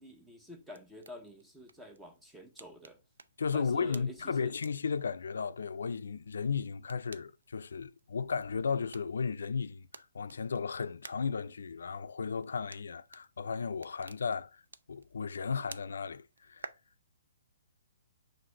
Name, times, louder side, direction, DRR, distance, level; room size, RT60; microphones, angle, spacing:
voice 1, 0.0-3.0 3.5-4.5, equal, 5° right, 0.7 m, -49 dB
sound 1, 0.6-16.7, right 4 dB, 85° right, 0.4 m, -56 dB
voice 2, 3.4-14.6 14.9-16.7, left 5 dB, 80° left, 0.3 m, -35 dB
6.0 x 2.5 x 2.9 m
hypercardioid pair, 150°, 0 cm